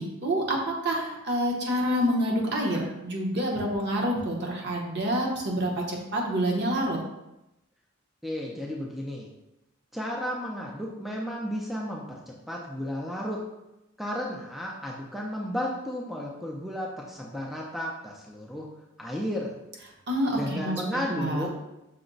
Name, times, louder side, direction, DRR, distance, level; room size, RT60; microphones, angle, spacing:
voice 1, 0.0-7.0 20.1-21.5, equal, 55° right, -1 dB, 0.9 m, -27 dB
voice 2, 8.2-9.3 9.9-13.4 14.0-18.7 19.0-19.6 20.3-21.5, equal, ahead, -3 dB, 0.4 m, -33 dB
5.8 x 2.1 x 3.9 m, 0.92 s
head